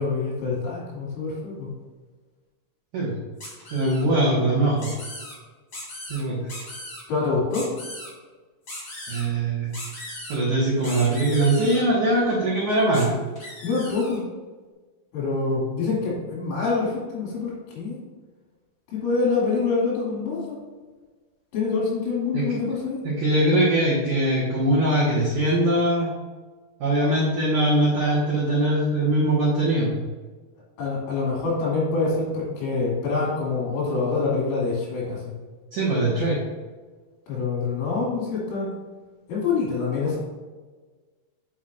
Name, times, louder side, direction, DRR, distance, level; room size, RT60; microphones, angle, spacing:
voice 1, 0.0-1.7 7.1-7.7 13.6-14.2 15.1-18.0 18.9-20.6 21.5-23.0 30.8-35.2 37.3-38.7 39.3-40.2, left 4 dB, 75° left, -5 dB, 4.9 m, -25 dB
sound 1, 3.4-4.0 4.8-5.3 5.7-6.2 6.5-7.0 7.5-8.1 8.7-9.3 9.7-10.4 10.8-11.8 12.9-13.0 13.4-14.2, left 1 dB, 50° left, 1.4 m, -38 dB
voice 2, 3.7-4.9 6.1-6.5 9.1-9.7 10.3-13.2 22.3-22.4 23.0-26.1 26.8-30.0 35.7-36.4, right 1 dB, 75° right, -7 dB, 1.7 m, -21 dB
9.3 x 5.9 x 2.6 m, 1.3 s
omnidirectional pair, 5.8 m